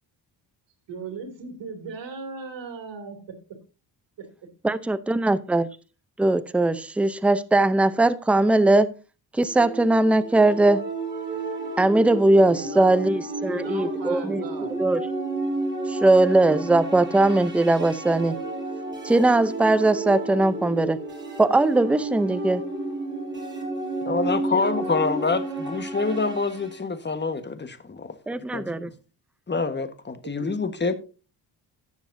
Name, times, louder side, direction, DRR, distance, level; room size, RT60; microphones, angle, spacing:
voice 1, 0.9-3.2 4.2-4.3 12.5-13.1 13.4-14.8 24.2-25.1 30.2-30.6, right 4 dB, 85° right, 2.8 m, -37 dB
voice 2, 4.6-5.7 6.2-8.9 9.3-10.8 11.8-14.4 14.7-15.0 15.9-18.4 19.0-21.0 21.4-22.6 28.3-28.9, right 2 dB, 5° right, 0.6 m, -20 dB
sound 1, 9.5-26.7, right 2 dB, 25° right, 6.7 m, -32 dB
voice 3, 24.0-28.1 28.5-28.7 29.5-30.9, left 4 dB, 25° left, 1.4 m, -26 dB
17.0 x 7.1 x 2.7 m
cardioid pair, 85°, 43 cm